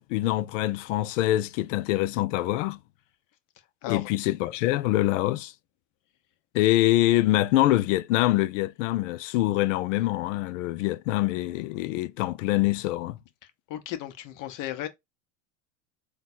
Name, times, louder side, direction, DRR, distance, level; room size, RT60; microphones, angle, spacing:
voice 1, 0.0-2.8 3.9-5.5 6.5-13.2, left 16 dB, 75° left, 0.6 m, -25 dB
voice 2, 13.7-14.9, left 13 dB, 50° left, 1.0 m, -34 dB
3.9 x 2.4 x 4.2 m
hypercardioid pair, 100°, 38 cm